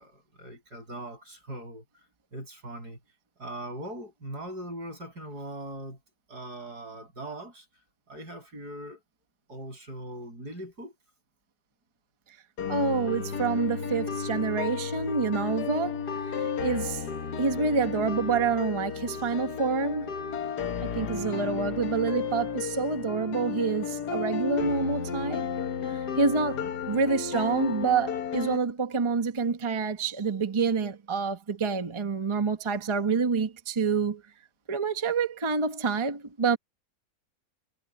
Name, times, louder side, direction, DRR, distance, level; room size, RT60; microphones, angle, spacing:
voice 1, 0.0-1.8 2.3-3.0 3.4-6.0 6.3-7.7 8.1-9.0 9.5-10.9 26.5-26.7, right 1 dB, 80° right, 8.6 m, -40 dB
sound 1, 12.6-28.6, left 6 dB, 85° left, 1.9 m, -33 dB
voice 2, 12.7-16.0 16.3-17.0 17.4-20.1 20.9-25.4 26.2-34.2 34.7-36.6, right 4 dB, 20° right, 1.0 m, -27 dB
omnidirectional pair, 1.7 m